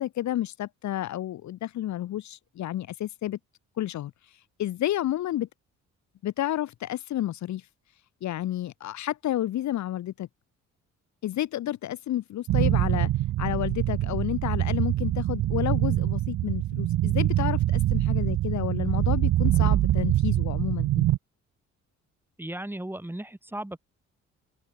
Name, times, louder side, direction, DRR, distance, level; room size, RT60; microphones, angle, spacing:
voice 1, 0.0-3.4 3.8-4.1 4.6-5.5 6.2-7.6 8.2-10.3 11.2-13.1 13.4-21.1, left 13 dB, 65° left, 1.0 m, -30 dB
sound 1, 12.5-21.2, right 14 dB, 75° right, 1.6 m, -24 dB
voice 2, 22.4-23.8, right 1 dB, 5° right, 3.8 m, -36 dB
open air
cardioid pair, 90°, 30 cm